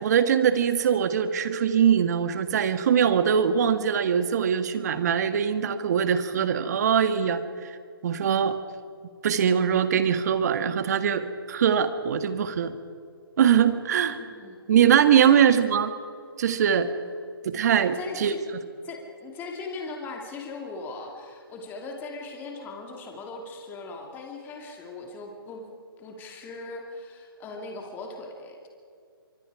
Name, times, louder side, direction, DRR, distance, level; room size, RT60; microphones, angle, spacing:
voice 1, 0.0-7.8 8.0-8.6 9.2-12.7 13.4-14.2 14.7-15.9 16.4-16.9 17.4-18.3, right 8 dB, 45° right, 10 dB, 1.6 m, -22 dB
voice 2, 14.1-14.6 15.3-15.4 17.9-18.4 18.8-25.7 26.0-28.7, left 3 dB, 15° left, 1 dB, 2.6 m, -39 dB
24.5 x 24.5 x 4.9 m, 2.4 s
hypercardioid pair, 150°, 13 cm